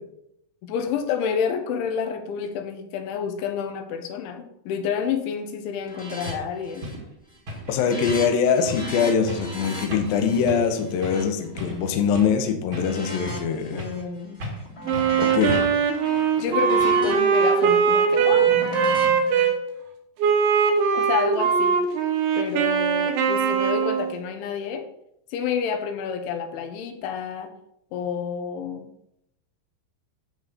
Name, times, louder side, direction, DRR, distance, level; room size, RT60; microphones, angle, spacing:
voice 1, 0.6-6.9 13.7-14.4 16.4-18.6 20.9-21.8 22.4-24.9 25.3-27.5 27.9-28.9, left 7 dB, 85° left, 6 dB, 3.4 m, -29 dB
sound 1, 5.8-6.3 6.6-7.1 7.4-12.2 12.7-14.0 14.4-19.5, equal, 25° left, 1.2 m, -37 dB
sound 2, 5.8-5.9 6.2-6.4 6.8-7.0 7.5-7.7 8.1-8.4 8.6-8.9 9.3-9.5 9.9-10.2 10.5-10.7 11.0-11.3 11.6-12.4 12.7-13.5 13.8-14.1 14.4-14.7 14.9-15.1 15.5-15.9, left 1 dB, 45° right, 1.8 m, -35 dB
voice 2, 7.7-13.8 15.2-15.6, left 6 dB, 70° left, 5 dB, 2.4 m, -23 dB
Wind instrument woodwind instrument, 14.9-19.6 20.2-24.1, right 6 dB, 80° right, 3.6 m, -21 dB
12.0 x 4.2 x 6.8 m, 0.76 s
omnidirectional pair, 5.3 m